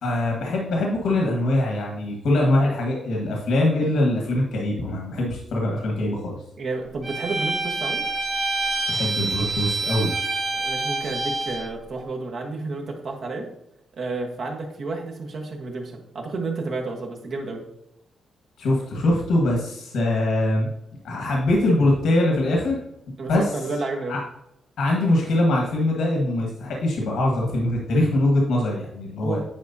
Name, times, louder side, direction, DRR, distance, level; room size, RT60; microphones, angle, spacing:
voice 1, 0.0-6.4 8.9-10.1 18.6-20.7 21.0-22.8 23.3-23.4 24.1-24.2 24.8-29.4, left 1 dB, 85° left, -1 dB, 1.7 m, -22 dB
voice 2, 6.6-8.1 10.5-13.5 14.0-17.6 23.2-24.2 29.2-29.4, right 3 dB, 55° right, 1 dB, 1.4 m, -31 dB
Bowed string instrument, 7.0-11.7, right 3 dB, 35° right, 1.1 m, -27 dB
9.6 x 4.7 x 2.8 m, 0.80 s
cardioid pair, 135°, 0 cm